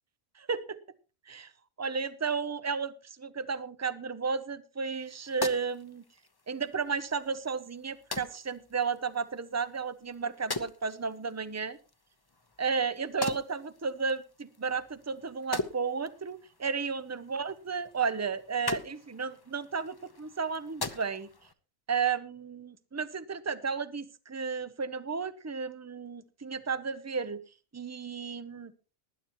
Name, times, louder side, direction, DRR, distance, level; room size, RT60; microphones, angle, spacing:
voice 1, 0.4-0.8 1.3-1.5 1.8-2.9 3.2-6.0 6.5-11.8 12.6-21.3 21.9-27.4 27.7-28.7, right 5 dB, 25° right, 15 dB, 0.4 m, -33 dB
sound 1, 4.9-21.5, left 3 dB, 20° left, 0.7 m, -42 dB
19.5 x 10.5 x 3.0 m, 0.34 s
omnidirectional pair, 1.4 m